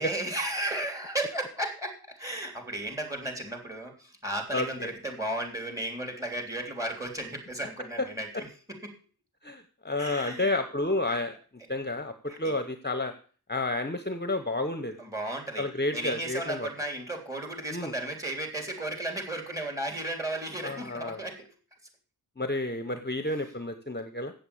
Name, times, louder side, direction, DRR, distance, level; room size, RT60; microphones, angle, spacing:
voice 1, 0.0-8.8 10.0-10.5 11.1-11.2 12.3-12.6 15.0-15.7 15.9-21.4, right 1 dB, 10° right, 4 dB, 3.4 m, -34 dB
voice 2, 4.5-4.9 8.0-8.1 9.4-11.3 11.7-13.1 13.5-15.0 15.6-16.7 17.7-17.9 20.6-21.2 22.4-24.3, left 2 dB, 25° left, 7 dB, 1.0 m, -30 dB
8.1 x 7.6 x 8.4 m, 0.41 s
wide cardioid pair, 55°, 38 cm